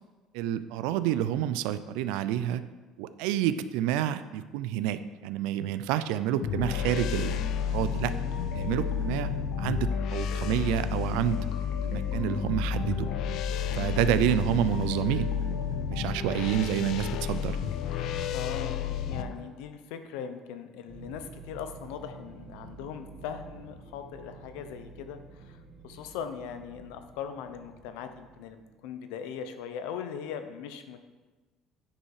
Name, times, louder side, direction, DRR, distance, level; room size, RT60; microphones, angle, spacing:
voice 1, 0.3-2.6 3.0-7.4 7.7-8.1 8.5-9.3 9.6-11.4 11.8-13.1 13.7-15.3 15.9-17.6, right 11 dB, 85° right, 13 dB, 0.4 m, -28 dB
sound 1, 6.4-19.2, left 8 dB, 45° left, 0.4 m, -31 dB
sound 2, 6.5-19.3, left 4 dB, 70° left, 1.4 m, -39 dB
voice 2, 18.3-31.0, left 7 dB, 90° left, 8 dB, 0.8 m, -40 dB
sound 3, 20.9-28.8, right 3 dB, 50° right, 2.6 m, -50 dB
10.0 x 5.4 x 4.9 m, 1.2 s
cardioid pair, 175°, 0 cm